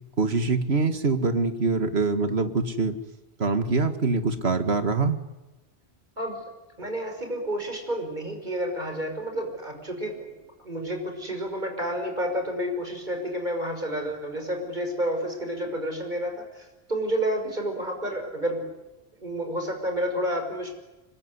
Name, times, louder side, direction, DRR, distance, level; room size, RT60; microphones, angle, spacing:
voice 1, 0.2-3.0 3.4-5.2, right 3 dB, 70° right, 9 dB, 2.1 m, -24 dB
voice 2, 6.8-10.3 10.6-18.7 19.2-20.7, equal, 45° right, 4 dB, 6.0 m, -30 dB
25.5 x 22.0 x 9.8 m, 1.1 s
omnidirectional pair, 1.1 m